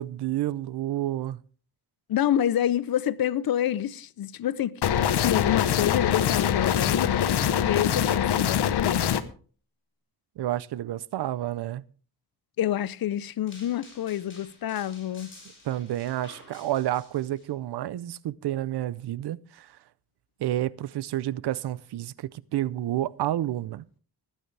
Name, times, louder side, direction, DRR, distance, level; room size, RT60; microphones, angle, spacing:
voice 1, 0.0-1.4 10.4-11.8 15.6-19.8 20.4-23.8, right 13 dB, 85° right, 0.6 m, -30 dB
voice 2, 2.1-4.8 5.2-9.1 12.6-15.3, left 11 dB, 65° left, 0.7 m, -28 dB
sound 1, 4.8-9.2, left 9 dB, 80° left, 1.0 m, -24 dB
sound 2, 13.5-17.5, left 3 dB, 30° left, 6.2 m, -51 dB
20.5 x 9.2 x 3.3 m
wide cardioid pair, 120°, 39 cm